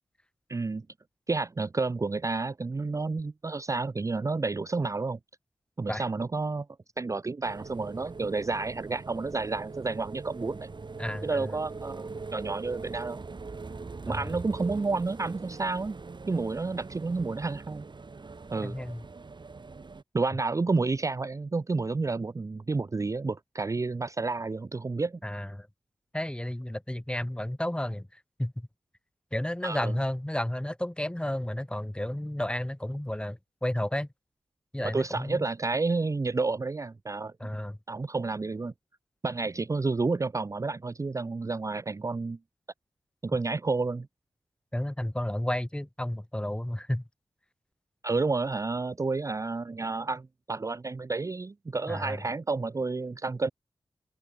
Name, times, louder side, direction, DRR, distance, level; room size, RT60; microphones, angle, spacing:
voice 1, 0.5-0.9 1.3-5.2 5.8-6.7 7.0-10.7 11.2-13.2 14.0-16.0 16.3-17.8 18.5-18.8 20.1-25.2 29.6-29.9 34.8-37.3 37.9-38.7 39.2-42.4 43.2-44.1 48.0-53.5, right 3 dB, 35° right, 0.5 m, -30 dB
sound 1, 7.4-20.0, right 4 dB, 50° right, 2.3 m, -42 dB
voice 2, 11.0-11.6 14.1-14.4 18.6-19.0 25.2-25.7 26.1-28.7 29.3-34.1 34.7-35.5 37.4-37.8 44.7-47.0 51.9-52.2, left 1 dB, 10° left, 2.1 m, -32 dB
cardioid pair, 55°, 10 cm